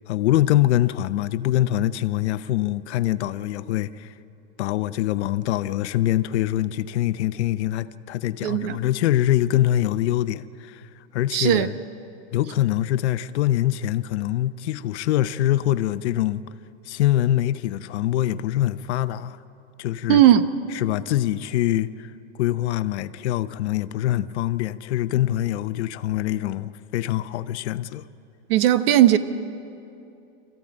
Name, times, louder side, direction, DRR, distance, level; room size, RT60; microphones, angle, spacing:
voice 1, 0.0-4.1 4.6-11.8 12.3-16.4 16.8-19.4 19.8-20.2 20.7-28.0, left 13 dB, 70° left, 0.8 m, -24 dB
voice 2, 8.4-8.8 11.3-11.7 20.1-20.5 28.5-29.2, right 12 dB, 55° right, 1.0 m, -17 dB
25.0 x 15.0 x 8.8 m
supercardioid pair, 175°, 35 cm